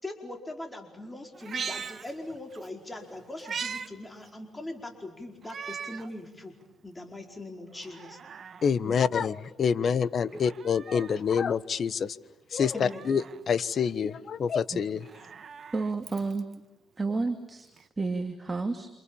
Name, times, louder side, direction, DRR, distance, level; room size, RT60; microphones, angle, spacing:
voice 1, 0.0-6.5 6.8-8.2 8.8-9.0 10.3-10.4 12.7-13.0, left 2 dB, 15° left, 4 dB, 4.9 m, -41 dB
Meow, 1.3-2.7 3.0-3.9 4.3-4.4 5.4-6.1 6.6-6.7 7.7-8.7 10.2-11.2 12.6-13.4 14.9-16.5 17.8-17.9, right 6 dB, 50° right, 1.7 m, -40 dB
voice 2, 8.6-12.1 12.5-15.0, left 6 dB, 50° left, 16 dB, 1.3 m, -27 dB
voice 3, 15.7-16.5 17.0-17.7 18.0-18.9, right 3 dB, 25° right, 6 dB, 2.4 m, -30 dB
28.5 x 28.0 x 7.2 m, 0.99 s
cardioid pair, 90°, 0 cm